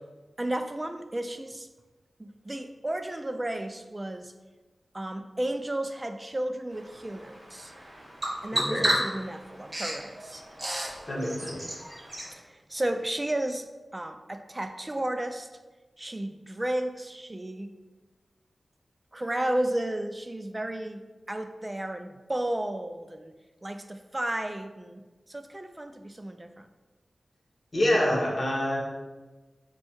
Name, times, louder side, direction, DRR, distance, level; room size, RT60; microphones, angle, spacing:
voice 1, 0.4-1.7 2.2-4.3 4.9-7.7 8.4-10.4 12.3-13.7 13.9-15.5 16.0-17.7 19.1-23.3 23.6-25.0 25.3-26.7, right 1 dB, 20° right, 8 dB, 0.3 m, -33 dB
Bird vocalization bird call bird song, 6.7-12.3, right 1 dB, 40° right, 1.0 m, -33 dB
voice 2, 8.5-8.9 11.1-11.6 27.7-28.8, left 1 dB, 40° left, -4 dB, 1.2 m, -26 dB
4.3 x 2.3 x 4.4 m, 1.2 s
wide cardioid pair, 85°, 0 cm